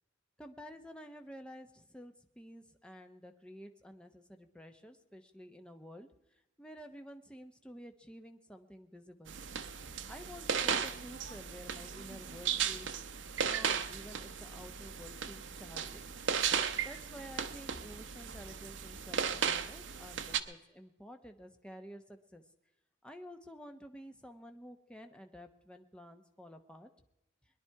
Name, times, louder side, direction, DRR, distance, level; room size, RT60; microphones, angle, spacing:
voice 1, 0.4-9.4 10.1-13.0 13.4-16.0 16.8-22.4 23.0-26.9, equal, 5° left, 6 dB, 0.9 m, -51 dB
sound 1, 9.3-20.4, right 7 dB, 65° right, 0.8 m, -36 dB
21.5 x 10.5 x 4.6 m, 0.90 s
head